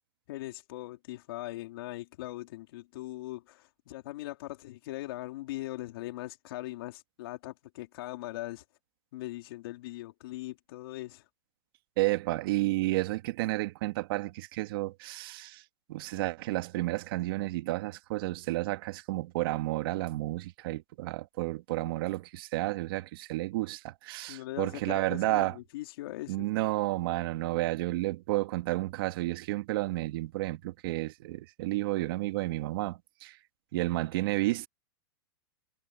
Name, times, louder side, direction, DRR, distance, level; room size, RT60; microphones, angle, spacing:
voice 1, 0.3-8.6 9.1-11.2 24.3-26.5, left 17 dB, 70° left, 4.0 m, -40 dB
voice 2, 12.0-15.6 15.9-25.6 26.3-33.4 33.7-34.7, right 18 dB, 65° right, 2.4 m, -31 dB
supercardioid pair, 140°, 13 cm